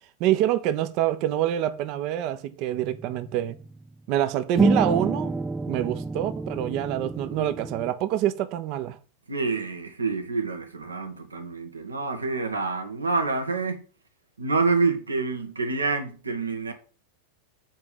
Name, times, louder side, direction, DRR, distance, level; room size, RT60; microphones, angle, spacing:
voice 1, 0.2-3.6 4.1-5.3 5.7-9.0, right 12 dB, 40° right, 0.8 m, -26 dB
sound 1, 2.9-3.8 4.5-7.9, right 2 dB, 10° right, 0.4 m, -28 dB
voice 2, 9.3-13.8 14.4-16.7, right 3 dB, 75° right, 1.5 m, -27 dB
7.5 x 4.7 x 7.2 m
figure-of-eight pair, 90°, 0 cm